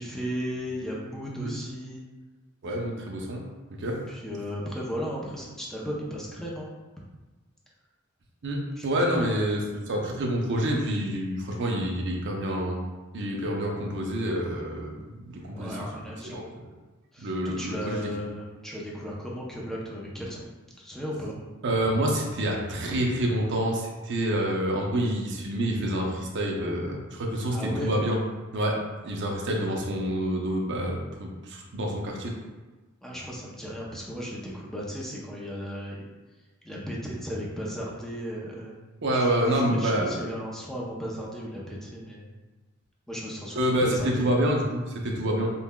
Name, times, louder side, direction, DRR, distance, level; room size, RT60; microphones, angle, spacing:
voice 1, 0.0-2.0 4.1-6.7 8.8-9.7 15.5-16.5 17.1-20.5 20.8-21.4 27.5-27.9 33.0-36.0 36.6-38.9 39.1-42.3 43.1-44.4, equal, ahead, -4 dB, 0.6 m, -35 dB
voice 2, 2.6-3.4 3.8-4.0 8.4-12.8 13.1-15.8 16.2-16.7 17.2-18.0 21.6-28.2 28.5-28.8 29.0-32.3 39.0-40.2 43.5-45.5, right 1 dB, 60° right, 0 dB, 0.6 m, -27 dB
5.3 x 2.3 x 2.2 m, 1.2 s
head